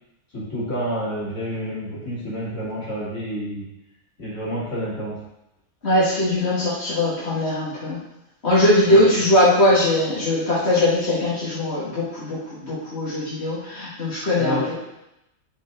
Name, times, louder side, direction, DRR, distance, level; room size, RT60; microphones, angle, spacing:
voice 1, 0.3-3.7 4.2-5.2 8.9-9.2 14.4-14.7, equal, 80° left, -8 dB, 3.8 m, -29 dB
voice 2, 5.8-8.0 8.4-14.7, left 1 dB, 60° left, -10 dB, 2.5 m, -20 dB
13.0 x 4.7 x 3.8 m, 0.88 s
omnidirectional pair, 1.2 m